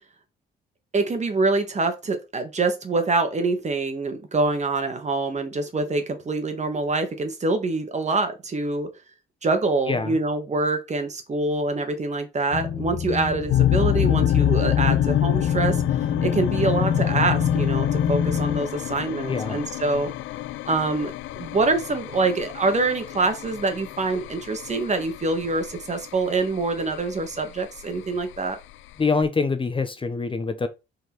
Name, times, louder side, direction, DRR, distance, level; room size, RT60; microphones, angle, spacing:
voice 1, 0.9-8.9 9.4-15.8 16.2-20.1 20.7-28.6, right 3 dB, 35° right, 1.6 m, -25 dB
voice 2, 9.9-10.2 19.3-19.6 29.0-30.7, left 4 dB, 25° left, 0.8 m, -25 dB
sound 1, 12.5-18.6, left 7 dB, 40° left, 1.2 m, -25 dB
sound 2, 13.5-29.2, left 13 dB, 80° left, 0.4 m, -28 dB
5.3 x 4.1 x 4.5 m
cardioid pair, 90°, 20 cm